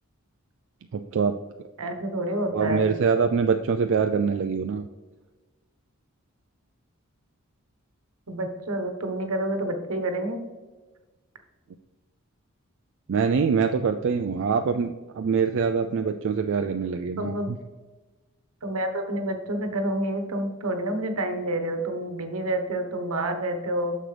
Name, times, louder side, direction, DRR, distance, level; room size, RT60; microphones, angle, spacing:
voice 1, 0.9-1.3 2.5-4.8 13.1-17.6, right 5 dB, 60° right, 6 dB, 0.4 m, -24 dB
voice 2, 1.8-2.9 8.3-10.4 17.2-17.5 18.6-24.0, right 1 dB, 80° right, 6 dB, 1.1 m, -28 dB
9.7 x 6.5 x 3.3 m, 1.3 s
head